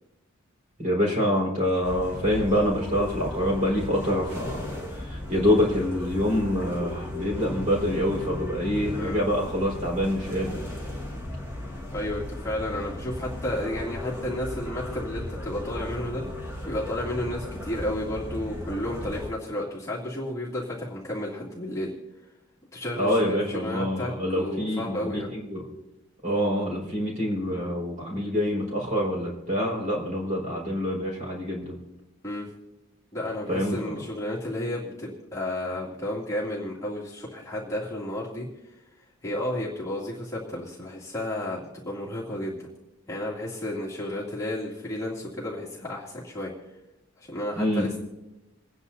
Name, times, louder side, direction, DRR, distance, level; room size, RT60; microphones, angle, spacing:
voice 1, 0.8-10.6 23.0-25.6 26.2-31.8 33.5-34.0 47.5-47.9, equal, 35° right, -4 dB, 4.7 m, -26 dB
sound 1, 1.8-19.3, left 1 dB, 10° right, 1.7 m, -36 dB
voice 2, 11.9-16.2 16.7-21.9 22.7-25.3 32.2-32.5 33.1-38.5 39.2-42.7 43.1-46.5 47.2-48.0, left 1 dB, 15° left, -7 dB, 2.6 m, -32 dB
29.5 x 9.8 x 2.8 m, 0.98 s
head